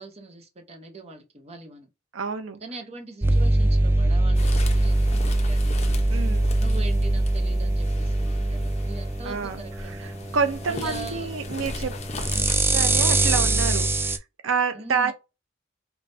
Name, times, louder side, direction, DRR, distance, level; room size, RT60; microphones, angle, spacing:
voice 1, 0.0-1.9 2.6-5.8 6.6-10.4 10.6-11.3 12.3-12.7 13.7-13.8 14.7-15.1, right 3 dB, 30° right, 0.9 m, -42 dB
voice 2, 2.1-2.6 6.1-6.5 9.2-12.0 12.7-14.2 14.4-15.1, right 5 dB, 85° right, 0.6 m, -28 dB
sound 1, 3.2-14.2, right 2 dB, 10° right, 0.3 m, -23 dB
sound 2, 4.3-12.5, left 2 dB, 35° left, 0.8 m, -39 dB
5.3 x 2.3 x 2.7 m
head